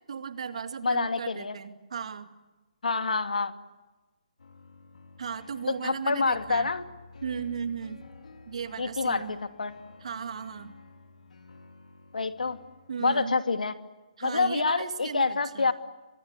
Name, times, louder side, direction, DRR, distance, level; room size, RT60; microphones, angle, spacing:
voice 1, 0.1-2.3 5.2-6.7 7.2-8.0 8.5-9.3 10.0-10.7 12.9-13.4 14.2-15.7, right 6 dB, 50° right, 9 dB, 2.2 m, -36 dB
voice 2, 0.8-1.6 2.8-3.5 5.7-6.8 8.8-9.7 12.1-12.6 13.0-13.7 14.2-15.7, left 4 dB, 90° left, 9 dB, 2.5 m, -27 dB
sound 1, 4.4-13.0, left 4 dB, 70° left, 4.2 m, -51 dB
29.0 x 24.5 x 8.3 m, 1.1 s
hypercardioid pair, 165°, 4 cm